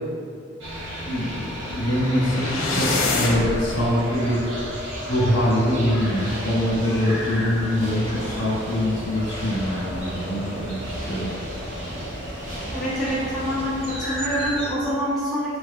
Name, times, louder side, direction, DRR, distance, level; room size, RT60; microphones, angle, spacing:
sound 1, 0.6-14.7, equal, 65° right, 1.1 m, -33 dB
voice 1, 1.0-4.4 5.1-11.3, equal, 65° left, -6 dB, 1.3 m, -24 dB
sound 2, 1.4-3.6, left 3 dB, 85° left, 0.7 m, -26 dB
sound 3, 5.7-13.9, equal, 40° right, 1.1 m, -38 dB
voice 2, 12.7-15.6, equal, ahead, -13 dB, 1.1 m, -26 dB
4.9 x 4.7 x 2.2 m, 2.4 s
head